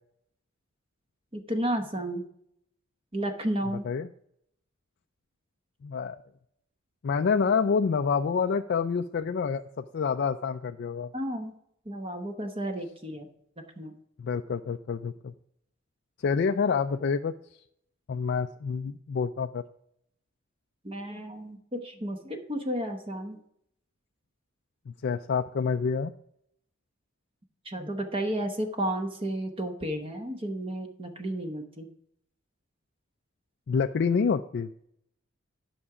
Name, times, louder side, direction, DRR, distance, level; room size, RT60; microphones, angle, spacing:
voice 1, 1.3-2.3 3.1-3.8 11.1-11.5 11.9-13.3 13.8-13.9 20.8-23.4 27.6-31.9, right 1 dB, 25° right, 4 dB, 1.0 m, -32 dB
voice 2, 5.8-6.2 7.0-11.1 14.2-15.3 16.2-17.3 18.1-19.6 24.9-26.1 33.7-34.7, left 5 dB, 55° left, 6 dB, 0.4 m, -27 dB
11.0 x 6.0 x 4.9 m, 0.73 s
head